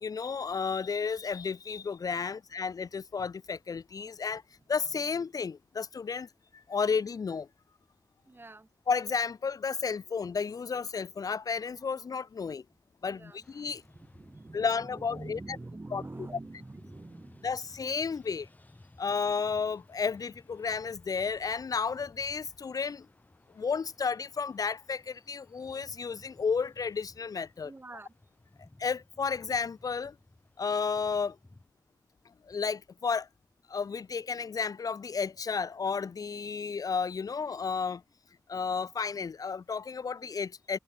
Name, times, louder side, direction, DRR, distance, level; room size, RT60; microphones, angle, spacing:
voice 1, 0.0-4.4 4.7-7.5 8.9-12.6 13.0-13.8 14.5-15.6 15.9-16.3 17.4-18.5 19.0-23.1 23.5-27.7 28.8-30.1 30.6-31.4 32.4-33.3 33.7-38.0 38.5-40.8, left 5 dB, 65° left, 0.4 m, -32 dB
voice 2, 8.3-8.7 13.1-17.6 27.6-28.1, right 2 dB, 35° right, 1.2 m, -46 dB
sound 1, 13.4-31.7, left 2 dB, 25° left, 1.1 m, -58 dB
wide cardioid pair, 65°, 7 cm